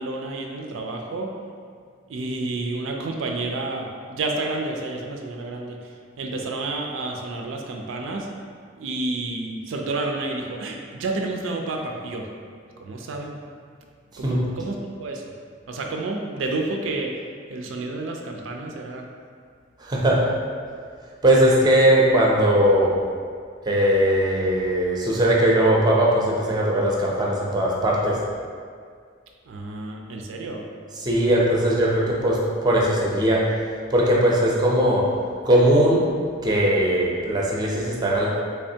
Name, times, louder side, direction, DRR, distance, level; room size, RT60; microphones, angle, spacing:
voice 1, 0.0-1.3 2.1-8.3 8.8-12.3 12.8-13.4 14.2-15.2 15.7-17.2 17.5-19.1 29.5-30.7, right 2 dB, 85° right, 1 dB, 0.4 m, -30 dB
voice 2, 19.8-20.2 21.2-22.9 23.6-28.2 31.0-33.4 33.9-35.0 35.4-36.0 36.4-38.3, right 1 dB, 20° right, -3 dB, 0.5 m, -19 dB
3.4 x 3.3 x 2.7 m, 2.1 s
head